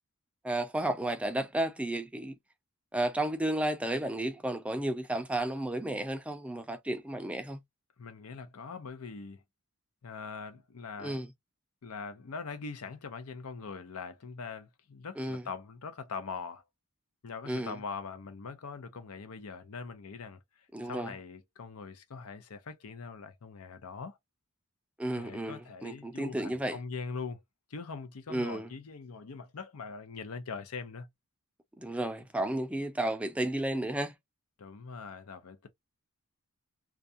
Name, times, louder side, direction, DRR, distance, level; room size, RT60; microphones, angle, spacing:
voice 1, 0.4-2.3 2.9-7.6 11.0-11.3 15.2-15.4 17.5-17.7 20.7-21.1 25.0-26.8 28.3-28.7 31.8-34.1, right 1 dB, 5° right, 0.3 m, -32 dB
voice 2, 8.0-9.4 10.0-11.2 11.8-16.6 17.2-20.4 20.8-24.2 25.2-27.4 27.7-31.1 34.6-35.7, left 5 dB, 85° left, 0.6 m, -42 dB
2.4 x 2.2 x 2.5 m
head